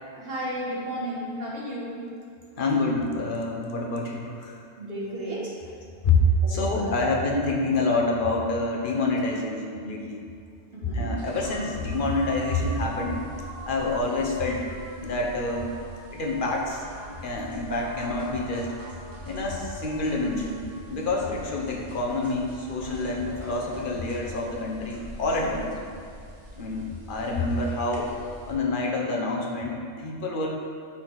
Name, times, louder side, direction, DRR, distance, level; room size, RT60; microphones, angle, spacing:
voice 1, 0.2-2.1 4.8-5.5 6.4-7.1 10.7-11.1, right 1 dB, 55° right, -6 dB, 1.7 m, -33 dB
voice 2, 2.6-4.6 6.0-6.2 6.5-10.2 10.9-13.2 13.7-14.6 15.0-15.7 16.1-16.8 17.2-18.7 19.3-20.6 20.9-25.7 26.6-28.1 28.5-30.5, left 3 dB, 50° left, -1 dB, 1.1 m, -27 dB
sound 1, 11.2-28.5, right 1 dB, 85° right, 1.7 m, -44 dB
sound 2, 16.6-25.6, right 1 dB, 20° right, 1.0 m, -46 dB
8.7 x 4.2 x 4.8 m, 2.3 s
omnidirectional pair, 1.2 m